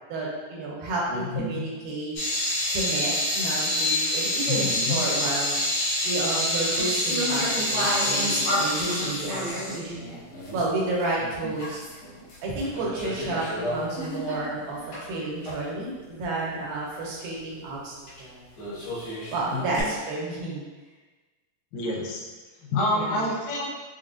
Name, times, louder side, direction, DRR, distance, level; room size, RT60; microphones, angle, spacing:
voice 1, 0.1-2.1 2.7-5.6 6.0-10.2 10.5-11.8 12.4-18.4 19.3-20.6 22.9-23.2, right 2 dB, 85° right, -5 dB, 2.7 m, -31 dB
voice 2, 1.1-1.7 4.5-5.0 11.4-11.5 19.5-19.9 21.7-22.2 22.6-23.7, left 2 dB, 80° left, -2 dB, 2.3 m, -28 dB
sound 1, 2.1-10.7 11.0-11.1 11.6-12.3 12.6-15.0 15.4-15.6 18.1-18.2 18.6-19.8, left 1 dB, 65° left, 1.4 m, -27 dB
6.1 x 2.2 x 2.5 m, 1.3 s
omnidirectional pair, 4.1 m